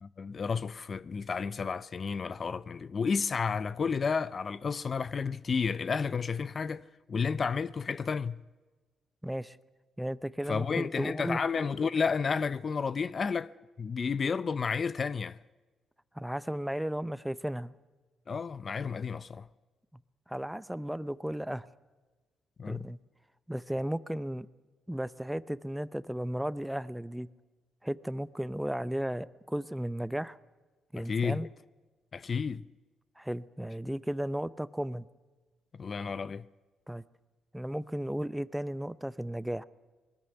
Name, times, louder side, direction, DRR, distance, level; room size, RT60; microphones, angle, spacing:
voice 1, 0.0-8.4 10.5-13.5 13.8-15.4 18.3-19.5 22.6-22.9 31.0-31.5 32.1-32.6 35.8-36.5, left 5 dB, 40° left, 0.6 m, -31 dB
voice 2, 9.2-9.6 10.0-11.4 16.1-17.7 20.3-21.7 22.7-23.0 23.5-24.5 24.9-27.3 27.8-30.4 30.9-31.5 33.2-35.1 36.9-37.0 37.5-39.6, equal, 5° right, 0.7 m, -34 dB
21.0 x 13.5 x 9.8 m
cardioid pair, 90°, 0 cm